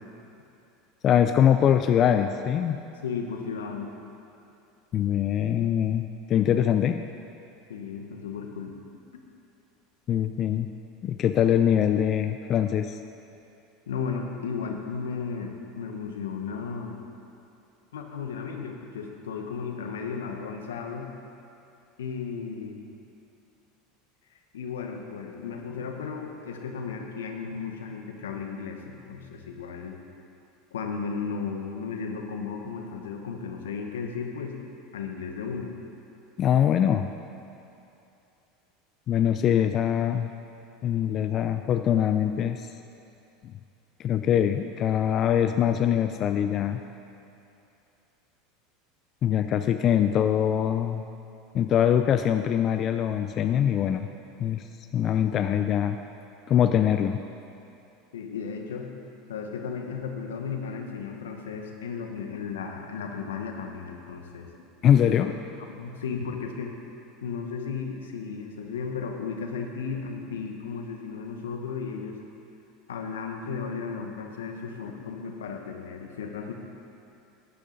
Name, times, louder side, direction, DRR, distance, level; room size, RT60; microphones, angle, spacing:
voice 1, 1.0-2.8 4.9-7.0 10.1-10.7 11.0-13.0 36.4-37.1 39.1-40.3 40.8-42.7 44.0-46.8 49.2-51.0 51.5-54.1 54.4-54.7 54.9-56.0 56.5-57.2 64.8-65.3, left 9 dB, 45° left, 8 dB, 0.4 m, -23 dB
voice 2, 3.0-3.9 7.7-8.8 13.9-17.0 17.9-21.1 22.0-22.8 24.5-30.0 30.7-34.6 34.9-35.7 58.1-58.9 59.3-64.5 65.0-65.3 65.7-66.7 67.2-72.2 72.9-76.5, left 5 dB, 90° left, 3 dB, 1.1 m, -34 dB
12.0 x 9.9 x 4.0 m, 2.8 s
hypercardioid pair, 95°, 0 cm